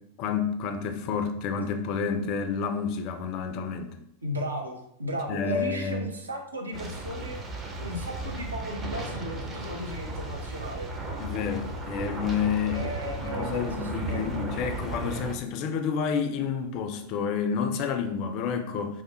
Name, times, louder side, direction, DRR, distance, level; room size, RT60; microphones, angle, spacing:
voice 1, 0.2-4.0 5.3-6.1 11.2-12.8 13.2-19.0, left 6 dB, 40° left, 7 dB, 0.3 m, -29 dB
voice 2, 4.2-7.4 7.8-10.9 12.7-14.5, equal, 75° right, 2 dB, 0.5 m, -35 dB
sound 1, 6.7-15.3, right 2 dB, 20° right, 0.5 m, -35 dB
3.1 x 2.1 x 2.9 m, 0.72 s
figure-of-eight pair, 90°, 0 cm